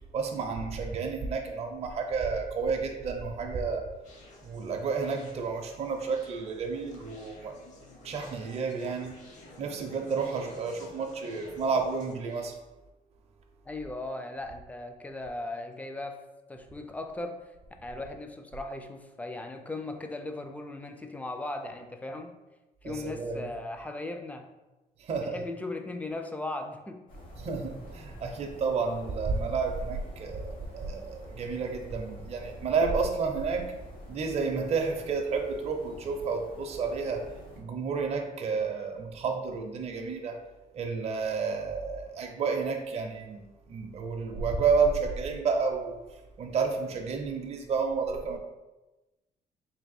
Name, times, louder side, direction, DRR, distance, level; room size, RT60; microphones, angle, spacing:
voice 1, 0.1-3.9 4.4-7.5 8.0-9.2 9.6-12.5 22.8-23.5 25.0-25.4 27.4-33.7 34.1-37.3 37.6-40.4 40.7-46.0 46.4-48.4, right 5 dB, 45° right, 3 dB, 0.5 m, -31 dB
Conversation, 4.0-12.5, left 2 dB, 55° left, 0.9 m, -51 dB
voice 2, 13.6-16.2 16.5-17.5 17.8-22.3 22.8-24.5 25.2-27.0, left 2 dB, 10° left, 5 dB, 0.3 m, -38 dB
sound 1, 27.1-37.6, right 1 dB, 70° left, 1.3 m, -47 dB
3.3 x 2.5 x 4.1 m, 1.1 s
cardioid pair, 115°, 15 cm